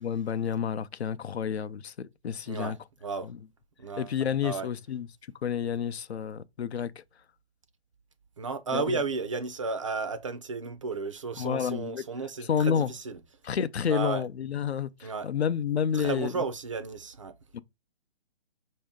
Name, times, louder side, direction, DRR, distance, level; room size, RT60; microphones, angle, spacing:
voice 1, 0.0-2.8 3.2-3.3 4.0-5.1 5.4-6.9 8.7-9.0 11.4-12.0 12.4-12.9 13.4-16.4 17.5-17.6, left 8 dB, 80° left, 0.6 m, -30 dB
voice 2, 2.5-3.3 3.8-4.1 4.4-4.7 8.4-13.2 13.9-14.2 15.0-15.3 15.9-17.4, right 4 dB, 30° right, 0.4 m, -33 dB
5.3 x 2.8 x 3.4 m
hypercardioid pair, 150°, 32 cm